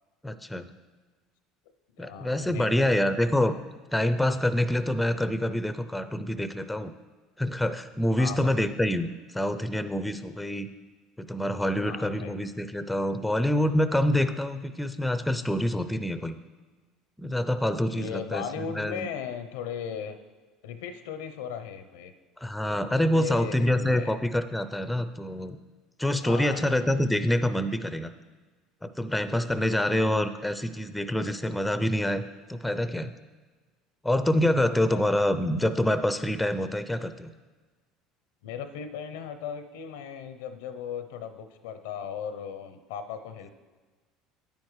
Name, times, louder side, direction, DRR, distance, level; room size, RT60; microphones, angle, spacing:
voice 1, 0.2-0.7 2.0-3.5 3.9-6.9 7.4-10.7 11.2-16.3 17.2-19.0 22.4-25.6 26.0-28.1 28.8-32.2 32.5-33.1 34.0-37.3, left 1 dB, 5° left, 11 dB, 0.5 m, -26 dB
voice 2, 2.0-3.2 8.2-8.5 11.8-12.3 17.9-20.2 20.6-22.1 23.1-24.2 26.2-26.7 29.5-29.9 34.7-35.2 38.4-43.5, left 7 dB, 85° left, 9 dB, 0.6 m, -37 dB
9.3 x 8.7 x 3.2 m, 1.4 s
supercardioid pair, 90°, 0 cm